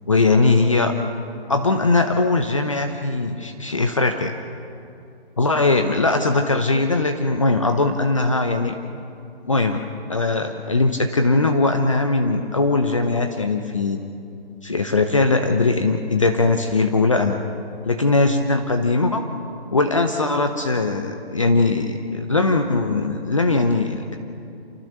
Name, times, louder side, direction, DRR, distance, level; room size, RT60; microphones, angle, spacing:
voice 1, 0.1-0.9 1.5-4.3 5.4-8.8 9.5-14.0 14.6-17.4 17.8-19.3 19.7-24.2, left 3 dB, 30° left, 6 dB, 0.8 m, -20 dB
28.0 x 15.0 x 6.7 m, 2.6 s
hypercardioid pair, 170°, 31 cm